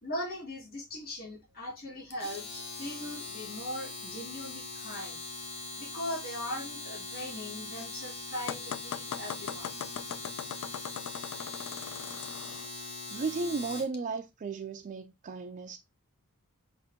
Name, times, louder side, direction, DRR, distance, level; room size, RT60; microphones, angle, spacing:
voice 1, 0.0-5.2 5.8-9.7, left 1 dB, 45° left, 2.4 m, -40 dB
Domestic sounds home sounds, 2.1-13.9, left 3 dB, 30° left, 1.1 m, -41 dB
sound 1, 8.5-12.7, left 8 dB, 70° left, 0.3 m, -40 dB
voice 2, 12.7-15.8, right 4 dB, 35° right, 0.4 m, -35 dB
6.2 x 2.6 x 2.7 m
head